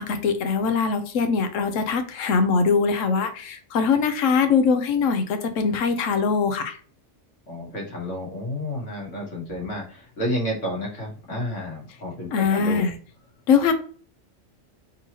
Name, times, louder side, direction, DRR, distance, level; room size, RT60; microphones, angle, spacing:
voice 1, 0.0-6.8 12.3-13.0 13.5-13.7, left 5 dB, 90° left, 8 dB, 1.0 m, -22 dB
voice 2, 7.5-12.9, left 1 dB, 75° left, -2 dB, 1.7 m, -31 dB
3.8 x 2.9 x 2.8 m, 0.44 s
omnidirectional pair, 1.3 m